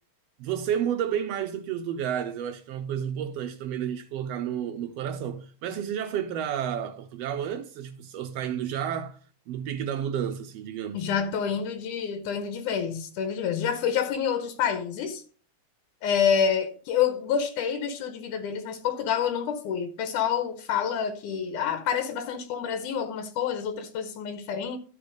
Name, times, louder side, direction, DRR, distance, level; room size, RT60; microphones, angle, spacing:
voice 1, 0.4-9.2 9.5-11.1, right 9 dB, 90° right, 1.4 m, -31 dB
voice 2, 10.9-15.2 16.0-24.8, left 7 dB, 90° left, 2.4 m, -28 dB
12.5 x 4.1 x 5.0 m
omnidirectional pair, 3.5 m